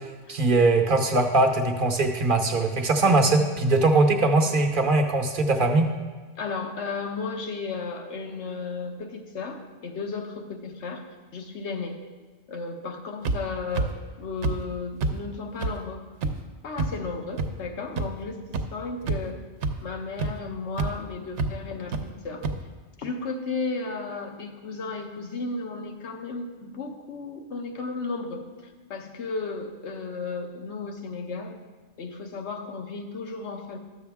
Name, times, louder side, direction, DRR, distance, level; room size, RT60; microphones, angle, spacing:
voice 1, 0.3-5.9, right 2 dB, 50° right, 4 dB, 0.9 m, -21 dB
voice 2, 6.3-11.0 11.3-12.0 12.5-16.1 16.6-19.4 19.8-22.5 23.0-31.5 32.0-33.8, left 4 dB, 75° left, 4 dB, 1.2 m, -34 dB
sound 1, 13.2-13.4 13.7-13.9 14.4-14.5 15.0-15.1 15.6-15.7 16.2-16.3 16.8-16.9 17.4-17.5 18.0-18.1 18.5-18.6 19.0-19.3 19.6-19.7 20.2-20.3 20.8-20.9 21.4-21.5 21.9-22.0 22.4-22.5, right 3 dB, 80° right, 1.0 m, -25 dB
12.5 x 7.0 x 3.5 m, 1.4 s
omnidirectional pair, 1.2 m